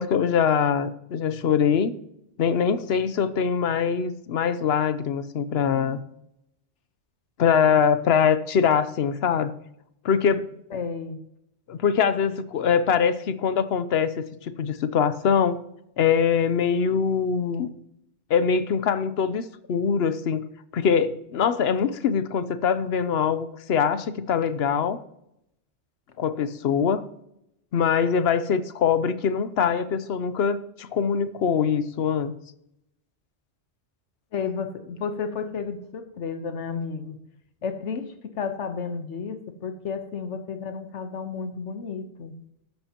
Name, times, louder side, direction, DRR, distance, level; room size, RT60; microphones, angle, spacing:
voice 1, 0.0-1.9 2.4-6.0 7.4-9.5 10.0-10.5 11.7-15.6 16.0-17.7 18.3-20.4 20.7-25.0 26.2-27.0 27.7-32.3, left 7 dB, 65° left, 13 dB, 0.9 m, -23 dB
voice 2, 10.7-11.2 34.3-37.2 37.6-42.3, left 5 dB, 90° left, 8 dB, 1.3 m, -32 dB
13.5 x 10.0 x 2.9 m, 0.79 s
omnidirectional pair, 1.2 m